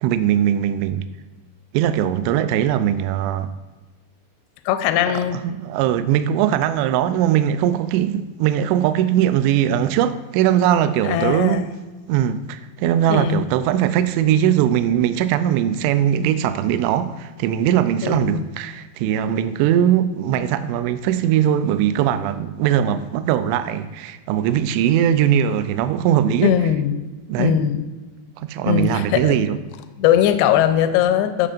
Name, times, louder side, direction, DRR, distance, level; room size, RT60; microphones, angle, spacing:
voice 1, 0.0-1.0 1.7-3.5 5.1-11.7 12.1-26.5 27.3-27.6 28.4-29.6, right 10 dB, 85° right, 2.7 m, -20 dB
voice 2, 4.7-5.4 11.1-11.7 13.1-13.4 18.0-18.4 26.4-27.0 27.4-27.9 28.6-29.4 30.0-31.5, left 10 dB, 85° left, 2.4 m, -19 dB
16.5 x 6.8 x 2.5 m
omnidirectional pair, 5.1 m